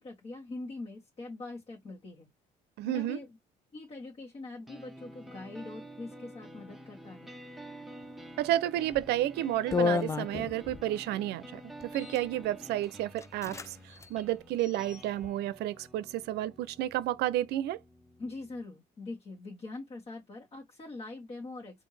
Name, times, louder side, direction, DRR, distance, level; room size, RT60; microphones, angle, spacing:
voice 1, 0.0-2.3 2.8-3.3 3.7-7.4 18.2-21.9, left 2 dB, 35° left, 1.6 m, -43 dB
voice 2, 2.8-3.2 8.4-11.6 11.9-17.8, right 13 dB, 80° right, 0.6 m, -31 dB
sound 1, 4.7-18.7, right 1 dB, ahead, 0.7 m, -49 dB
sound 2, 8.9-9.1 9.7-10.8 11.8-12.3 12.8-12.9 13.2-13.7 13.9-14.1 14.6-15.3, left 4 dB, 15° left, 0.3 m, -32 dB
4.3 x 2.7 x 3.3 m
cardioid pair, 110°, 17 cm